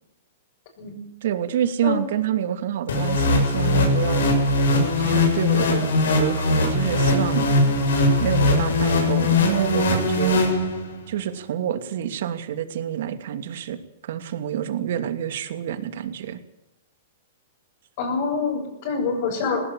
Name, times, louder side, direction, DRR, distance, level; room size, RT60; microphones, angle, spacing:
voice 1, 1.2-4.2 5.0-5.9 6.1-7.5 8.0-10.4 11.1-13.8 14.0-16.4, right 10 dB, 65° right, 9 dB, 2.7 m, -27 dB
sound 1, 2.9-11.1, left 2 dB, 85° left, 7.5 m, -20 dB
voice 2, 18.0-19.7, left 5 dB, 50° left, -4 dB, 7.3 m, -26 dB
20.0 x 17.5 x 8.9 m, 0.88 s
hypercardioid pair, 150°, 0 cm